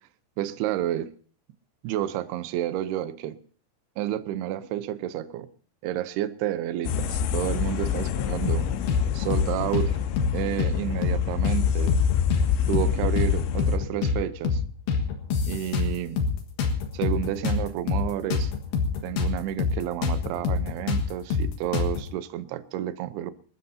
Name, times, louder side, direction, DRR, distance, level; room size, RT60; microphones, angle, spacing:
voice 1, 0.4-1.1 1.8-3.4 4.0-5.5 5.8-8.7 9.1-10.0 10.3-11.9 12.7-14.6 15.4-16.2 16.9-18.5 19.0-23.3, right 12 dB, 80° right, 12 dB, 2.4 m, -30 dB
sound 1, 6.8-13.8, left 9 dB, 80° left, 3.4 m, -27 dB
sound 2, 8.4-9.0 9.3-9.5 9.7-10.7 11.0-11.2 11.4-12.5 12.7-12.9 13.2-14.2 14.4-14.6 14.9-16.3 16.6-19.3 19.6-19.7 20.0-22.0, left 5 dB, 55° left, 2.8 m, -25 dB
27.0 x 13.5 x 2.8 m, 0.43 s
omnidirectional pair, 5.5 m